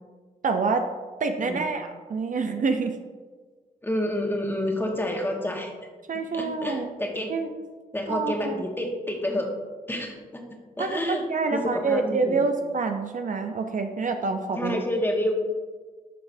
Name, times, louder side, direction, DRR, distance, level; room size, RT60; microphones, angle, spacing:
voice 1, 0.4-0.8 1.2-3.0 6.1-6.9 7.3-7.5 8.1-8.6 10.8-14.8, right 4 dB, 55° right, 5 dB, 0.6 m, -27 dB
voice 2, 3.8-5.7 6.3-7.3 7.9-9.5 9.9-10.4 10.8-11.2 11.5-12.4 14.5-15.4, left 1 dB, 15° left, 1 dB, 1.4 m, -29 dB
11.5 x 3.9 x 2.7 m, 1.4 s
cardioid pair, 55°, 16 cm